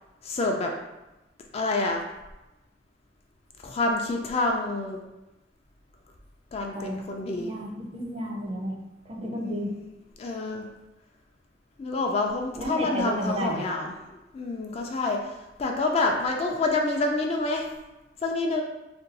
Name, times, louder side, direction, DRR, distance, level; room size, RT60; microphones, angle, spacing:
voice 1, 0.2-0.7 1.5-2.0 3.6-5.0 6.5-7.5 9.3-9.9 10.2-10.7 11.8-17.7 18.2-18.6, left 2 dB, 35° left, 1 dB, 0.3 m, -28 dB
voice 2, 7.3-8.8 9.1-9.7 12.6-13.6, right 1 dB, 30° right, 0 dB, 0.4 m, -32 dB
2.6 x 2.2 x 3.9 m, 1.0 s
head